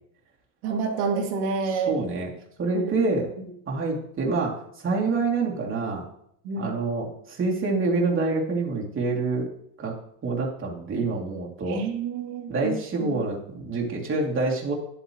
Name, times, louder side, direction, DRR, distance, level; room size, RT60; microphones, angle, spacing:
voice 1, 0.6-2.0 2.7-2.9 3.4-3.5 6.4-6.7 11.7-13.1, right 5 dB, 70° right, 1 dB, 2.5 m, -28 dB
voice 2, 1.7-2.3 2.6-3.3 3.7-6.0 6.6-9.5 9.8-9.9 10.2-11.8 12.5-14.7, right 3 dB, 30° right, -2 dB, 2.7 m, -26 dB
11.0 x 8.2 x 3.1 m, 0.70 s
supercardioid pair, 105°, 42 cm